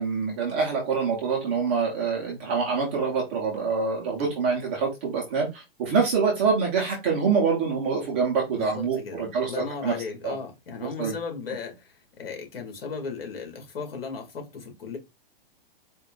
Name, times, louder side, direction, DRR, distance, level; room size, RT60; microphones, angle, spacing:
voice 1, 0.0-9.9 10.2-10.3 11.0-11.1, right 5 dB, 15° right, 0.4 m, -25 dB
voice 2, 8.4-15.0, left 5 dB, 75° left, 2.0 m, -36 dB
4.2 x 2.1 x 3.6 m
hypercardioid pair, 170°, 30 cm